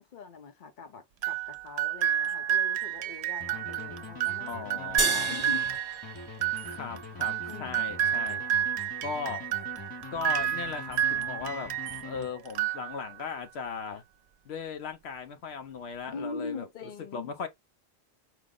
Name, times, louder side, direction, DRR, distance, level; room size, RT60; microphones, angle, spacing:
voice 1, 0.0-4.5 4.8-5.6 7.5-7.8 16.1-17.3, left 4 dB, 50° left, 1.0 m, -42 dB
sound 1, 1.2-12.1 12.5-13.3, right 10 dB, 85° right, 0.9 m, -30 dB
sound 2, 3.4-12.7, left 4 dB, 25° left, 0.6 m, -44 dB
voice 2, 4.5-5.3 6.7-8.4 9.0-9.5 10.1-11.7 12.0-14.0 14.4-16.7 17.1-17.5, left 5 dB, 75° left, 1.0 m, -37 dB
sound 3, 5.0-7.6, right 3 dB, 30° right, 0.9 m, -34 dB
4.9 x 2.0 x 3.7 m
omnidirectional pair, 1.1 m